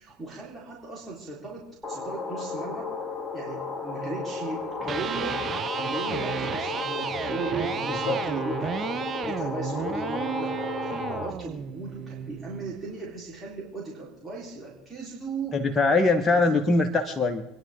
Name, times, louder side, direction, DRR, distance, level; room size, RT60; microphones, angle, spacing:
voice 1, 0.0-2.9 3.3-5.4 5.8-15.6 16.4-16.7, right 3 dB, 15° right, -5 dB, 3.9 m, -37 dB
sound 1, 1.8-11.3, left 4 dB, 5° left, 2.0 m, -34 dB
Electric guitar, 4.7-12.8, right 7 dB, 35° right, 0.6 m, -33 dB
voice 2, 15.5-17.4, left 3 dB, 20° left, 4 dB, 1.3 m, -22 dB
27.0 x 10.5 x 3.7 m, 0.91 s
hypercardioid pair, 80°, 0 cm